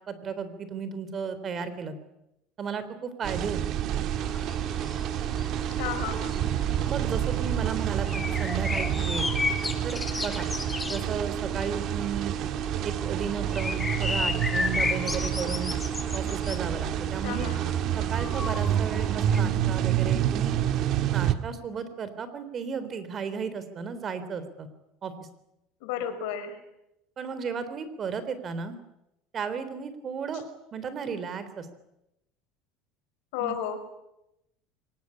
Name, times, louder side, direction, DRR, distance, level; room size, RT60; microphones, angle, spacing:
voice 1, 0.1-2.0 2.6-3.8 6.9-9.3 9.8-10.5 10.9-12.4 12.8-15.8 16.1-17.5 18.0-20.6 21.1-24.7 25.0-25.1 27.2-28.8 29.3-30.4 30.7-31.7 33.4-33.6, right 6 dB, 30° right, 12 dB, 3.7 m, -34 dB
sound 1, 3.2-21.4, right 10 dB, 50° right, 1.7 m, -28 dB
sound 2, 4.1-19.4, left 3 dB, 10° left, 2.3 m, -35 dB
voice 2, 5.8-6.5 17.2-17.7 25.8-26.6 33.3-33.8, left 9 dB, 80° left, 8 dB, 5.3 m, -33 dB
24.0 x 20.0 x 9.9 m, 0.87 s
cardioid pair, 135°, 0 cm